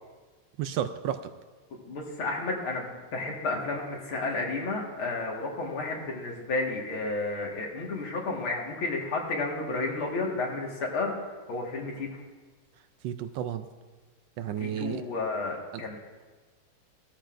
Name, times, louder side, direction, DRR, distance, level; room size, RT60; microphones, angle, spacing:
voice 1, 0.6-1.3 13.0-13.7 14.4-15.0 15.7-15.8, right 10 dB, 75° right, 10 dB, 1.2 m, -32 dB
voice 2, 1.9-11.1 11.5-12.2 14.6-16.0, left 3 dB, 85° left, -1 dB, 2.6 m, -32 dB
16.5 x 13.0 x 2.5 m, 1.4 s
omnidirectional pair, 2.2 m